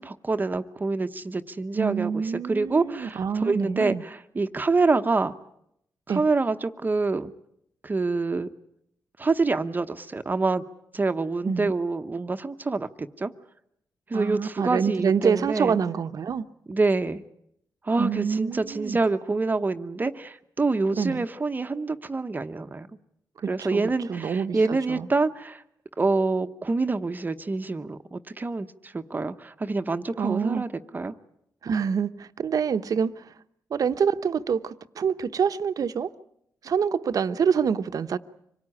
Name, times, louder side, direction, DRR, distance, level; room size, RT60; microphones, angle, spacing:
voice 1, 0.0-2.2 2.5-5.3 6.1-7.3 7.8-8.5 9.2-10.6 10.9-13.3 14.1-15.8 16.7-17.2 17.8-22.9 23.5-25.6 26.0-31.1, right 3 dB, 25° right, 0.9 m, -26 dB
voice 2, 1.8-4.0 6.1-6.2 11.4-11.7 14.1-16.5 18.0-19.0 20.9-21.2 23.4-25.1 30.2-30.7 31.6-33.3 33.7-36.1 36.6-38.2, right 6 dB, 55° right, 0.9 m, -26 dB
25.5 x 18.0 x 9.8 m
cardioid pair, 100°, 7 cm